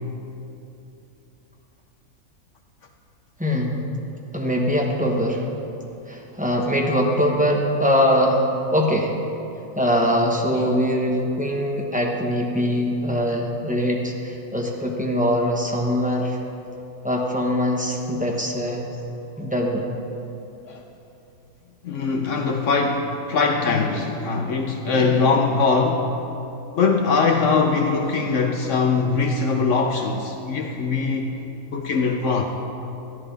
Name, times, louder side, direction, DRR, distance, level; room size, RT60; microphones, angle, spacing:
voice 1, 3.4-3.8 4.3-5.5 6.1-9.1 9.8-16.4 17.0-18.9 19.4-19.8, equal, 5° right, -1 dB, 0.9 m, -22 dB
voice 2, 21.8-26.1 26.7-31.3 31.7-32.4, left 4 dB, 65° left, 3 dB, 0.9 m, -21 dB
13.5 x 11.0 x 3.4 m, 2.8 s
omnidirectional pair, 1.5 m